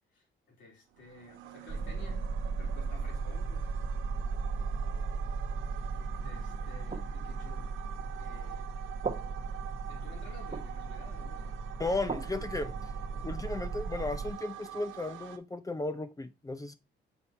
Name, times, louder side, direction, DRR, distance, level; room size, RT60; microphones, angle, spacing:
voice 1, 0.1-3.8 6.1-7.7 8.2-8.7 9.9-11.6, left 3 dB, 70° left, 3.7 m, -53 dB
sound 1, 0.9-15.4, right 12 dB, 85° right, 0.8 m, -47 dB
sound 2, 1.7-14.3, right 4 dB, 35° right, 1.1 m, -36 dB
voice 2, 11.8-12.7 13.2-16.7, left 2 dB, 15° left, 0.6 m, -35 dB
7.1 x 4.1 x 4.3 m
cardioid pair, 90°, 20 cm